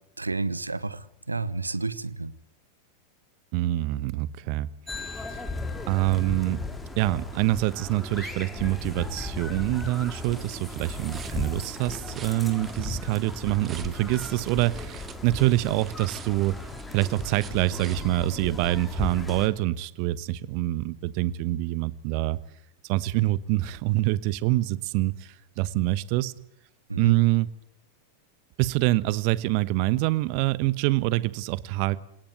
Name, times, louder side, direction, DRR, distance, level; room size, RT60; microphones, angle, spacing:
voice 1, 0.2-2.3 26.9-27.1, right 3 dB, 80° right, 18 dB, 1.1 m, -31 dB
voice 2, 3.5-5.4 5.9-6.6 7.0-16.6 16.9-22.4 22.8-26.3 26.9-27.5 28.6-32.0, right 17 dB, 45° right, 18 dB, 1.2 m, -26 dB
sound 1, 4.9-19.5, left 2 dB, 10° left, 3.8 m, -36 dB
sound 2, 9.4-18.8, right 8 dB, 25° right, 2.1 m, -48 dB
28.0 x 18.0 x 9.4 m, 0.77 s
figure-of-eight pair, 90°, 0 cm